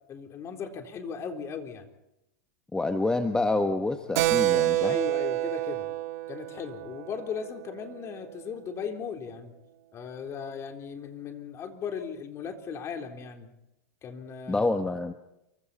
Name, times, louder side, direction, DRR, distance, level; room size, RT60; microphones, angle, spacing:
voice 1, 0.1-1.9 4.8-5.9 6.3-9.5 9.9-13.5 14.0-14.7, left 6 dB, 30° left, 4 dB, 3.8 m, -37 dB
voice 2, 2.7-5.0 14.5-15.1, left 2 dB, 10° left, 7 dB, 1.3 m, -27 dB
Keyboard (musical), 4.2-8.2, right 16 dB, 60° right, 1.8 m, -28 dB
29.0 x 24.5 x 4.3 m, 0.88 s
hypercardioid pair, 125°, 10 cm